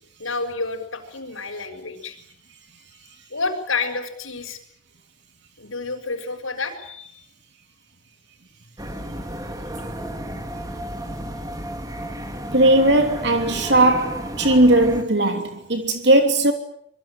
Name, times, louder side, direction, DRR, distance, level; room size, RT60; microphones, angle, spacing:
voice 1, 0.2-4.6 5.6-7.3, left 3 dB, 90° left, 6.8 m, -30 dB
sound 1, 8.8-15.0, equal, 20° right, 3.1 m, -32 dB
voice 2, 12.5-16.5, right 1 dB, 60° right, 3.0 m, -18 dB
26.0 x 23.0 x 9.0 m
head